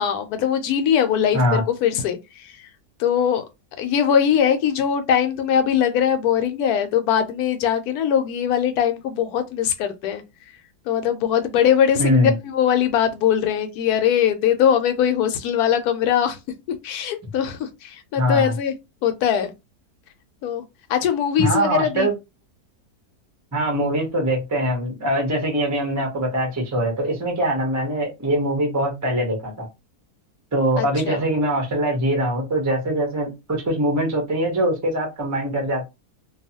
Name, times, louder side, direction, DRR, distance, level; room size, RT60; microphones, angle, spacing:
voice 1, 0.0-2.7 3.0-3.4 3.8-10.2 10.9-16.4 16.8-18.7 19.0-19.5 20.4-20.6 20.9-22.1 30.8-31.2, left 9 dB, 75° left, 1.1 m, -21 dB
voice 2, 12.0-12.4 18.2-18.5 21.4-22.1 23.5-29.7 30.5-35.9, right 1 dB, 20° right, 0.4 m, -22 dB
2.6 x 2.3 x 2.7 m
omnidirectional pair, 1.7 m